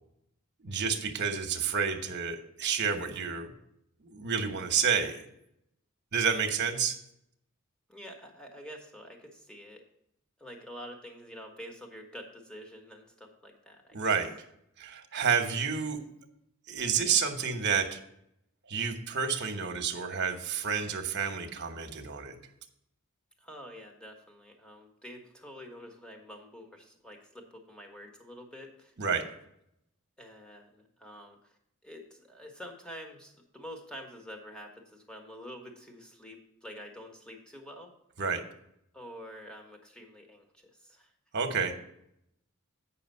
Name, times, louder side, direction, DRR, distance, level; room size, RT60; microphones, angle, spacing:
voice 1, 0.6-3.5 4.0-5.2 6.1-7.0 13.9-14.3 14.8-16.0 16.7-18.0 18.7-22.4 29.0-29.2 38.2-38.4 41.3-41.7, right 6 dB, 50° right, 6 dB, 1.1 m, -29 dB
voice 2, 7.9-9.8 10.4-14.0 23.4-28.9 30.2-31.5 31.8-37.9 38.9-41.1, equal, 5° left, 2 dB, 1.3 m, -47 dB
8.7 x 5.8 x 5.5 m, 0.77 s
head